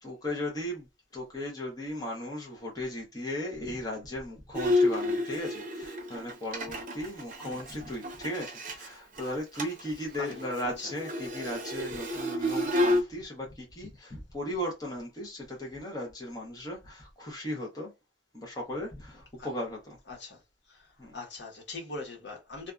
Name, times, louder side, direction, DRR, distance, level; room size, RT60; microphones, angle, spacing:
voice 1, 0.0-0.9 1.1-17.9 18.3-20.0 21.0-21.1, left 1 dB, 20° left, 0.7 m, -37 dB
Bowed string instrument, 4.5-8.9 9.2-9.3 9.6-9.9 10.1-13.0, left 1 dB, 45° right, 0.7 m, -30 dB
voice 2, 10.2-10.7 19.4-19.5 20.1-20.4 20.7-20.9 21.1-22.7, left 3 dB, 65° left, 1.1 m, -41 dB
2.6 x 2.3 x 2.3 m
head